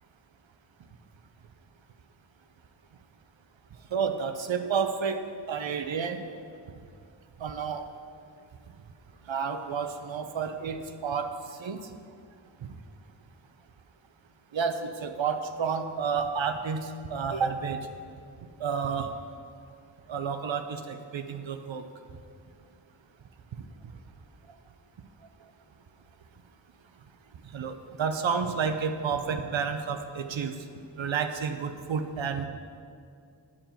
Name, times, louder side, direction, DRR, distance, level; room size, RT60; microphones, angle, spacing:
voice 1, 3.9-5.2 5.5-6.2 7.4-7.8 9.2-12.0 14.5-17.9 18.6-19.1 20.1-21.9 27.5-30.6 31.0-32.5, right 6 dB, 70° right, 8 dB, 0.7 m, -30 dB
9.1 x 7.4 x 4.5 m, 2.3 s
wide cardioid pair, 90°, 47 cm